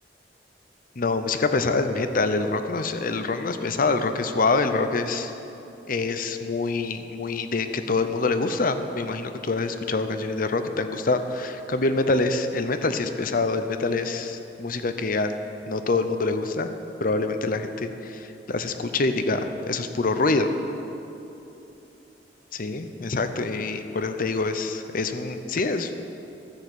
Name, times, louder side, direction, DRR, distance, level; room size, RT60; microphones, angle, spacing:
voice 1, 1.0-5.3 5.9-15.3 15.7-16.7 17.0-20.5 22.5-25.9, left 3 dB, 50° left, 9 dB, 0.7 m, -25 dB
13.5 x 6.5 x 8.0 m, 2.9 s
head